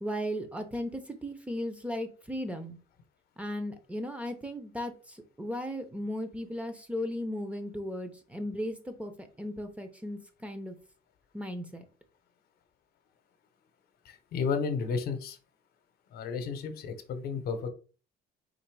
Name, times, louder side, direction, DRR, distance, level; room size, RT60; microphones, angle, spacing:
voice 1, 0.0-2.8 3.4-10.8 11.3-11.8, equal, 5° right, 7 dB, 0.8 m, -36 dB
voice 2, 14.0-15.4 16.1-17.7, left 5 dB, 65° left, 8 dB, 0.9 m, -32 dB
3.9 x 2.7 x 4.7 m, 0.36 s
cardioid pair, 110°, 17 cm